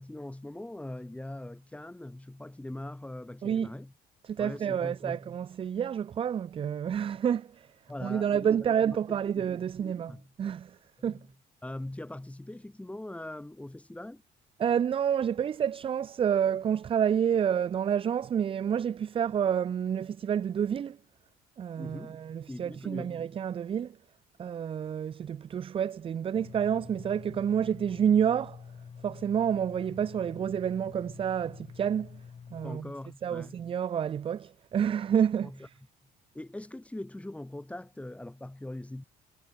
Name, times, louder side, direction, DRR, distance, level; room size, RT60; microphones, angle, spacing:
voice 1, 0.0-3.9 4.4-5.3 7.9-8.5 9.1-9.5 9.8-10.3 11.0-11.3 11.6-14.2 21.8-22.2 22.5-23.3 32.6-33.6 35.4-35.7 36.3-39.0, left 1 dB, 5° left, 5.7 m, -41 dB
voice 2, 4.2-7.7 8.0-10.1 10.4-10.8 11.0-11.2 14.6-21.0 21.6-24.0 24.4-28.6 29.0-32.2 32.5-32.9 33.2-35.5, right 8 dB, 30° right, 0.4 m, -29 dB
sound 1, 26.3-32.8, left 6 dB, 35° left, 3.6 m, -47 dB
cardioid pair, 110°, 17 cm